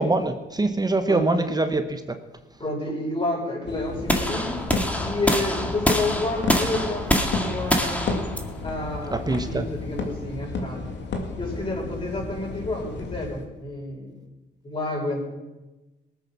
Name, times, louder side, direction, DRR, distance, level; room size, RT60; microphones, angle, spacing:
voice 1, 0.0-2.0 9.1-9.7, right 2 dB, 20° right, 8 dB, 1.1 m, -24 dB
voice 2, 1.1-1.5 2.6-4.6 5.0-8.3 8.6-10.9 11.4-14.1 14.6-15.2, left 2 dB, 25° left, -3 dB, 6.1 m, -30 dB
sound 1, 3.7-13.5, left 3 dB, 65° left, 2.3 m, -33 dB
sound 2, 4.1-10.2, left 1 dB, 5° left, 2.0 m, -26 dB
19.0 x 8.3 x 6.1 m, 1.1 s
cardioid pair, 90°, 20 cm